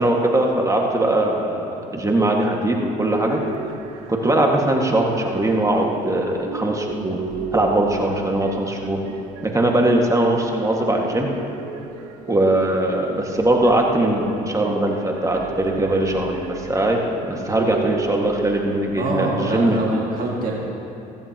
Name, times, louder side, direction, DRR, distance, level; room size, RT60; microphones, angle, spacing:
voice 1, 0.0-1.6 1.9-3.4 4.1-7.2 7.5-9.0 9.4-11.3 12.3-17.0 17.3-19.9, right 1 dB, 15° right, 0 dB, 2.0 m, -20 dB
sound 1, 3.3-19.1, right 6 dB, 85° right, 0.8 m, -36 dB
voice 2, 19.0-20.6, right 2 dB, 50° right, -3 dB, 2.2 m, -25 dB
16.0 x 14.5 x 3.1 m, 2.9 s
hypercardioid pair, 65°, 19 cm